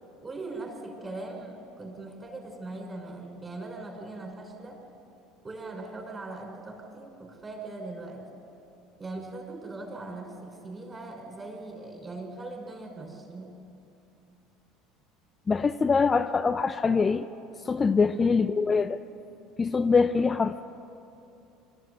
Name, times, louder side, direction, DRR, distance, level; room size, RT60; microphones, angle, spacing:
voice 1, 0.2-4.8 5.4-8.4 9.0-13.6 18.1-18.4, right 2 dB, 25° right, 2 dB, 5.4 m, -40 dB
voice 2, 15.5-17.3 17.6-19.0 19.6-20.6, left 5 dB, 25° left, 9 dB, 0.6 m, -24 dB
25.5 x 13.5 x 9.5 m, 2.8 s
figure-of-eight pair, 70°, 0 cm